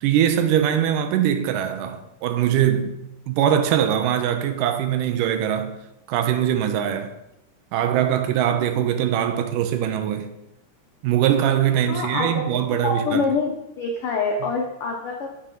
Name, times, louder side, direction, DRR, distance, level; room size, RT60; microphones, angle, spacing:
voice 1, 0.0-3.0 3.3-5.8 6.1-7.1 7.7-10.3 11.0-13.2, right 10 dB, 90° right, 2.3 m, -22 dB
voice 2, 11.9-15.3, left 4 dB, 85° left, 1.2 m, -26 dB
8.3 x 7.2 x 3.8 m
omnidirectional pair, 3.8 m